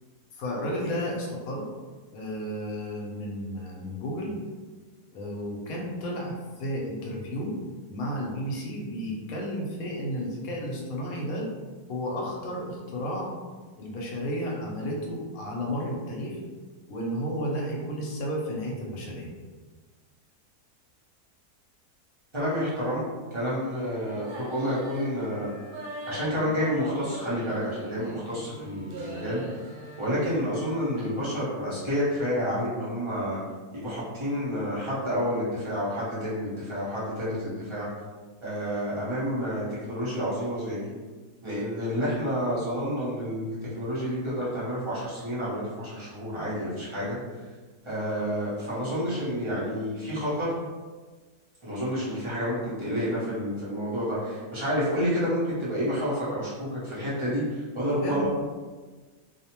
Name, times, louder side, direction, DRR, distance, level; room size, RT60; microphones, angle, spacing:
voice 1, 0.3-1.6 2.1-4.3 5.1-7.6 7.9-11.5 11.9-13.4 13.8-16.4 16.9-19.3 57.9-58.3, equal, 70° left, -2 dB, 1.0 m, -32 dB
voice 2, 22.3-25.5 26.1-29.4 30.0-33.4 33.7-37.9 38.4-40.9 41.4-47.2 47.8-50.5 51.6-58.3, equal, 35° right, -9 dB, 0.4 m, -29 dB
sound 1, 24.2-31.2, right 1 dB, 80° right, 1.1 m, -41 dB
2.6 x 2.1 x 2.8 m, 1.4 s
omnidirectional pair, 1.6 m